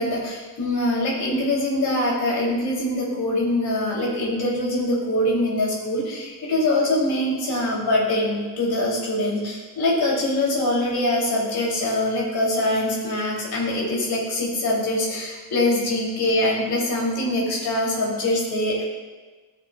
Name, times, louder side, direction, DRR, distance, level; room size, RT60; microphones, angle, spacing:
voice 1, 0.0-18.8, left 1 dB, 75° left, -4 dB, 2.8 m, -23 dB
15.5 x 6.6 x 2.2 m, 1.3 s
wide cardioid pair, 135°, 37 cm